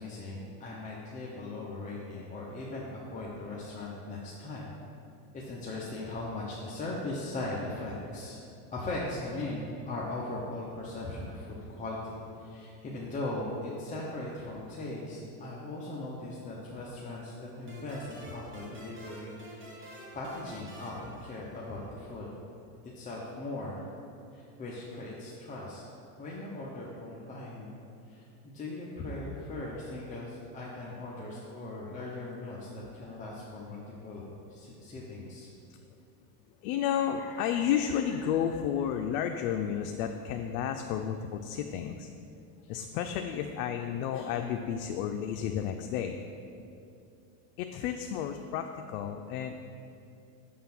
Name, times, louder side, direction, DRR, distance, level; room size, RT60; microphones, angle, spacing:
voice 1, 0.0-4.7 5.3-8.4 8.7-22.3 22.9-23.9 24.3-25.8 26.2-27.7 28.1-33.8 34.0-35.5, left 2 dB, 15° left, -5 dB, 0.6 m, -39 dB
sound 1, 17.7-22.0, right 1 dB, 25° right, 1.3 m, -49 dB
voice 2, 36.6-42.1 42.6-46.2 47.6-49.6, left 9 dB, 80° left, 5 dB, 0.5 m, -32 dB
6.4 x 3.7 x 5.9 m, 2.6 s
supercardioid pair, 135°, 45 cm